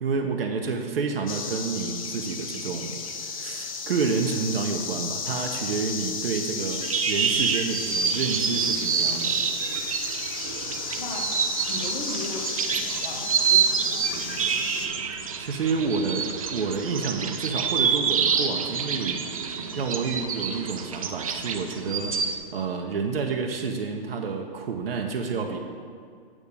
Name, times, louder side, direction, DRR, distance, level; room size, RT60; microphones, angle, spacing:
voice 1, 0.0-9.4 15.4-19.2 19.8-22.1 22.5-25.6, right 5 dB, 70° right, 2 dB, 0.9 m, -29 dB
sound 1, 1.3-14.9, left 5 dB, 35° left, 0.6 m, -34 dB
sound 2, 6.7-22.4, right 6 dB, 35° right, 0.4 m, -27 dB
voice 2, 11.0-11.3 11.7-14.4, left 2 dB, 60° left, 0 dB, 1.3 m, -38 dB
8.7 x 3.6 x 6.7 m, 2.1 s
hypercardioid pair, 165°, 31 cm